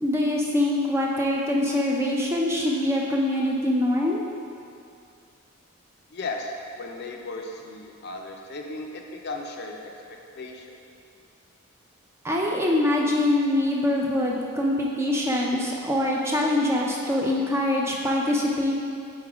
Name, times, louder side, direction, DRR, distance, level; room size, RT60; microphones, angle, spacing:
voice 1, 0.0-4.2 12.2-18.7, left 1 dB, 10° right, -2 dB, 0.4 m, -24 dB
voice 2, 6.1-9.9 10.4-10.8, left 2 dB, 50° left, 2 dB, 0.5 m, -36 dB
4.7 x 4.2 x 4.8 m, 2.5 s
head